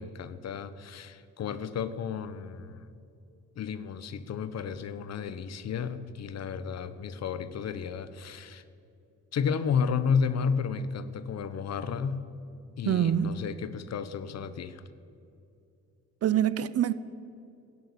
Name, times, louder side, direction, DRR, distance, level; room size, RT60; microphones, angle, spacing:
voice 1, 0.0-3.0 3.6-8.6 9.3-12.2 12.8-14.8, left 6 dB, 60° left, 1.0 m, -32 dB
voice 2, 12.9-13.5 16.2-16.9, right 10 dB, 55° right, 0.7 m, -25 dB
15.5 x 11.0 x 8.3 m
cardioid pair, 90°, 30 cm